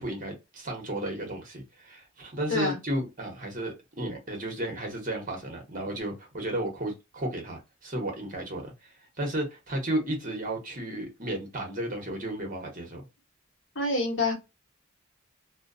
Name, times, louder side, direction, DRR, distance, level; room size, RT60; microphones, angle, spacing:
voice 1, 0.0-8.9 9.2-13.0, right 1 dB, 40° right, 1.0 m, -33 dB
voice 2, 13.7-14.3, left 2 dB, 65° left, 1.1 m, -26 dB
2.4 x 2.3 x 2.5 m
head